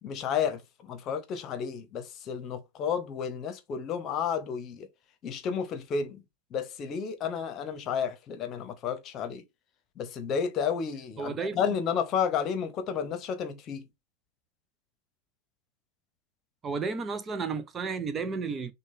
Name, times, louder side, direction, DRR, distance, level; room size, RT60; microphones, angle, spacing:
voice 1, 0.0-4.9 5.2-6.2 6.5-9.4 10.0-13.9, left 7 dB, 30° left, 0.9 m, -31 dB
voice 2, 11.2-11.6 16.6-18.7, right 5 dB, 20° right, 0.5 m, -32 dB
6.2 x 2.3 x 3.5 m
figure-of-eight pair, 90°, 0 cm